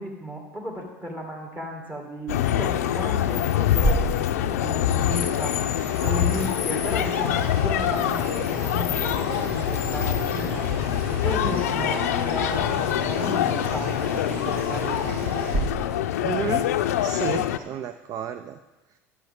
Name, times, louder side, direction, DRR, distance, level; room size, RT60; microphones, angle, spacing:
voice 1, 0.0-4.0 4.3-5.7 6.0-10.7 11.1-15.1, equal, 25° right, 0 dB, 2.1 m, -34 dB
sound 1, 2.3-17.6, left 11 dB, 80° left, 0.5 m, -25 dB
Water tap faucet / Sink (filling or washing), 3.8-15.6, right 1 dB, 75° right, 3.9 m, -33 dB
voice 2, 16.2-16.7 17.0-18.6, right 8 dB, 45° right, 10 dB, 0.5 m, -31 dB
12.0 x 11.0 x 3.7 m, 1.2 s
hypercardioid pair, 80°, 8 cm